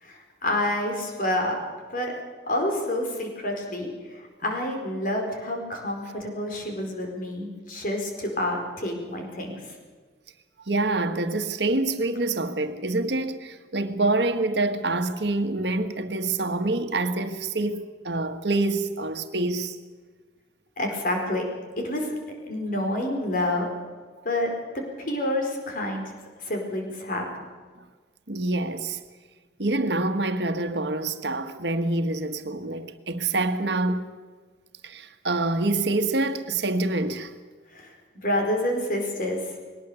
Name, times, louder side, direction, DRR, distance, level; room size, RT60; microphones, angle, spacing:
voice 1, 0.0-1.6 1.9-2.1 2.5-3.9 4.4-9.6 20.8-21.4 21.8-22.1 22.4-23.7 24.2-24.5 25.1-26.0 26.4-27.3 37.7-37.9 38.2-39.4, left 1 dB, 50° left, 4.6 m, -28 dB
voice 2, 10.7-19.8 28.3-29.0 29.6-34.0 34.8-37.3, right 2 dB, 75° right, 1.5 m, -26 dB
21.5 x 19.0 x 7.0 m
head